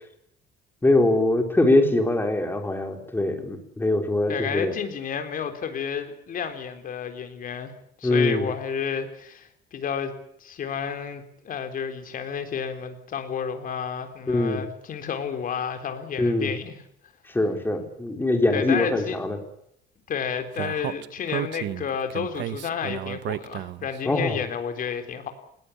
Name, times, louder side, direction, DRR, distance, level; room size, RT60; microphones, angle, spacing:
voice 1, 0.8-4.7 8.0-8.5 14.3-14.6 16.2-16.5 17.3-19.4 24.1-24.4, left 2 dB, 10° left, 5 dB, 4.0 m, -22 dB
voice 2, 4.3-7.7 8.0-10.1 10.4-16.8 18.5-19.2 20.1-25.3, left 7 dB, 45° left, 8 dB, 3.9 m, -31 dB
Speech, 20.6-24.0, right 14 dB, 70° right, 1.0 m, -32 dB
20.0 x 19.0 x 9.9 m, 0.72 s
cardioid pair, 145°, 19 cm